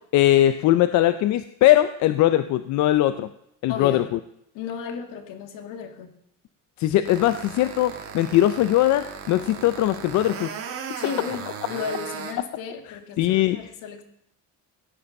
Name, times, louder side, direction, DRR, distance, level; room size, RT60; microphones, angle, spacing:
voice 1, 0.1-3.3 3.6-4.2 6.8-10.5 13.2-13.7, left 14 dB, 60° left, 12 dB, 0.6 m, -20 dB
voice 2, 3.7-4.1 4.5-6.1 11.0-14.0, left 6 dB, 75° left, 6 dB, 2.1 m, -34 dB
sound 1, 7.0-12.3, right 7 dB, 45° right, 2.3 m, -36 dB
16.5 x 9.5 x 5.4 m, 0.77 s
cardioid pair, 165°, 33 cm